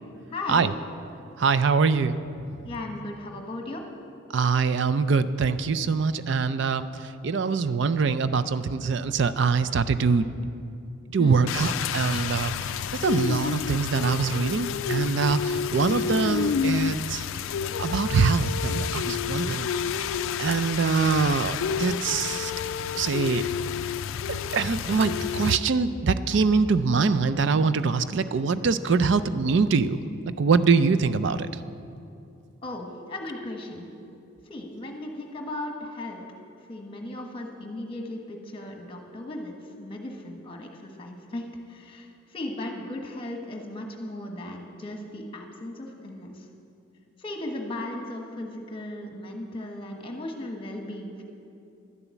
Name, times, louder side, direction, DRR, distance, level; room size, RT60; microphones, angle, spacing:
voice 1, 0.3-0.7 2.6-3.9 11.2-11.5 32.6-33.9 34.4-36.2 36.6-46.5 47.2-51.2, left 1 dB, 25° left, 2 dB, 1.3 m, -36 dB
voice 2, 1.4-2.2 4.3-6.9 7.2-10.3 11.1-12.5 13.0-17.2 17.8-19.7 20.4-22.5 22.9-23.4 24.5-30.0 30.4-31.5, right 5 dB, 55° right, 12 dB, 0.4 m, -23 dB
Rain, 11.5-25.6, left 7 dB, 70° left, 0.3 m, -29 dB
12.0 x 7.0 x 8.2 m, 2.6 s
head